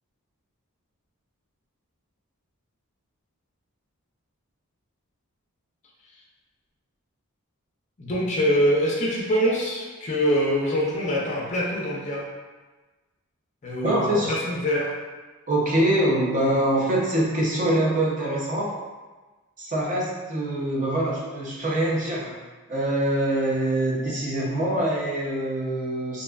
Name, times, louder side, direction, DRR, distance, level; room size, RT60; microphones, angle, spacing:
voice 1, 8.0-12.3 13.6-14.9, equal, 35° left, -3 dB, 0.4 m, -24 dB
voice 2, 13.8-14.3 15.5-18.7 19.6-22.3 22.7-26.2, right 1 dB, 35° right, -4 dB, 0.5 m, -24 dB
2.5 x 2.3 x 2.2 m, 1.3 s
head